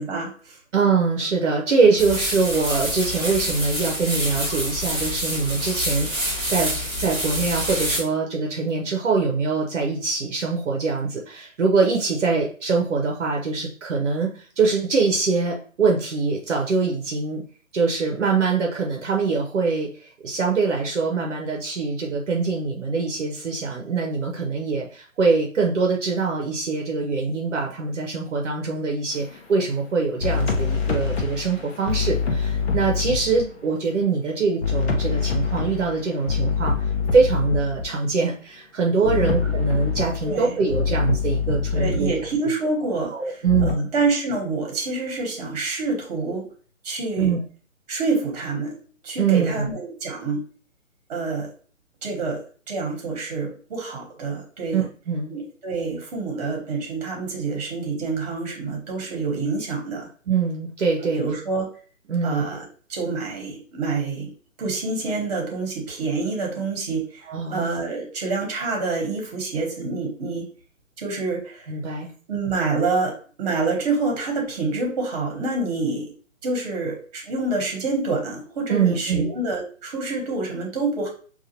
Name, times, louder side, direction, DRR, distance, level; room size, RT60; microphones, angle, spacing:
voice 1, 0.0-0.6 39.0-39.5 40.2-40.6 41.7-46.5 46.8-47.3 47.9-48.8 49.0-50.4 51.1-51.5 52.0-52.4 52.7-54.8 55.3-60.1 61.0-61.7 62.2-62.6 62.9-64.3 64.6-70.4 71.0-71.7 72.3-76.1 76.4-81.1, right 3 dB, 30° right, 0 dB, 1.2 m, -27 dB
voice 2, 0.7-6.7 7.0-17.4 17.7-36.7 37.1-42.1 43.1-43.9 47.2-47.4 49.2-49.7 54.7-55.3 60.3-61.2 62.1-62.5 67.3-67.7 71.7-72.1 78.7-79.3, right 4 dB, 60° right, 0 dB, 0.8 m, -23 dB
sound 1, 2.0-8.0, equal, 5° right, 0.5 m, -27 dB
sound 2, 29.1-29.4 30.2-33.7 34.6-37.9 39.0-42.3 43.4-43.7, left 5 dB, 50° left, 0.7 m, -25 dB
5.5 x 2.5 x 2.8 m, 0.41 s
figure-of-eight pair, 145°, 41 cm